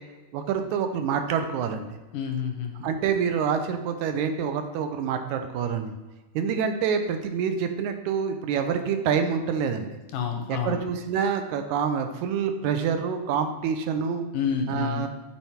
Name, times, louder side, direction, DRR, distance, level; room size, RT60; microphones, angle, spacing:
voice 1, 0.3-1.9 2.8-5.9 6.4-9.9 10.5-14.3 14.7-15.1, right 7 dB, 80° right, 7 dB, 2.0 m, -27 dB
voice 2, 2.1-2.7 10.1-10.8 14.3-15.1, left 7 dB, 85° left, 2 dB, 2.6 m, -28 dB
8.9 x 4.5 x 4.3 m, 1.1 s
omnidirectional pair, 3.6 m